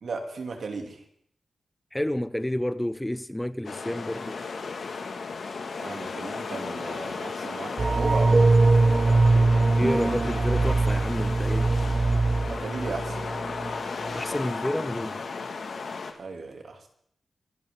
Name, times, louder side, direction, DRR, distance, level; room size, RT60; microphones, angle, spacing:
voice 1, 0.0-1.0 5.8-10.4 12.4-13.2 16.2-16.9, right 4 dB, 65° right, 2.8 m, -37 dB
voice 2, 1.9-4.4 9.6-11.7 14.1-15.2, left 1 dB, 10° left, 0.6 m, -30 dB
sound 1, 3.6-16.1, left 4 dB, 70° left, 2.0 m, -35 dB
sound 2, 7.8-13.8 14.1-14.2, right 3 dB, 35° right, 0.5 m, -22 dB
25.0 x 11.5 x 3.8 m
cardioid pair, 70°, 0 cm